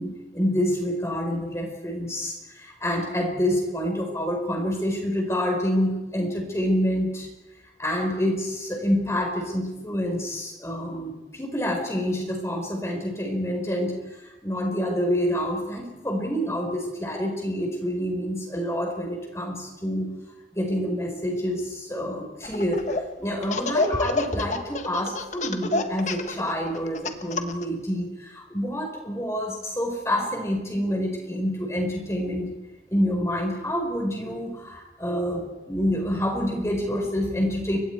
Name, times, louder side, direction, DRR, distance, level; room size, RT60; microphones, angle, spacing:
voice 1, 0.0-7.3 7.8-20.1 20.5-32.5 32.9-37.8, equal, 15° left, 1 dB, 4.6 m, -27 dB
Laughter, 22.4-23.0 23.4-27.6, left 3 dB, 40° left, 1.5 m, -27 dB
29.5 x 24.5 x 4.7 m, 1.0 s
head